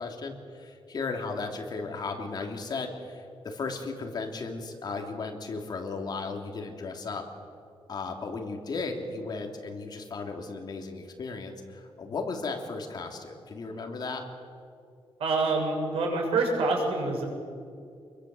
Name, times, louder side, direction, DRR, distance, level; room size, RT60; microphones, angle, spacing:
voice 1, 0.0-7.2 7.9-14.2, left 4 dB, 45° left, 2 dB, 3.2 m, -35 dB
voice 2, 15.2-17.2, right 3 dB, 85° right, 1 dB, 7.1 m, -26 dB
27.5 x 22.5 x 7.9 m, 2.4 s
wide cardioid pair, 170°, 10 cm